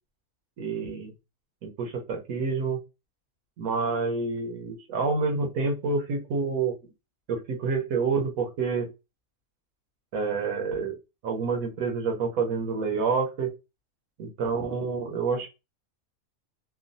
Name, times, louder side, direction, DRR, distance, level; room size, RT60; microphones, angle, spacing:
voice 1, 0.6-1.1 1.6-2.8 3.6-6.7 7.3-8.9 10.1-10.9 11.2-13.5 14.2-15.5, right 4 dB, 90° right, 2 dB, 1.2 m, -28 dB
3.0 x 2.3 x 2.5 m, 0.26 s
omnidirectional pair, 1.4 m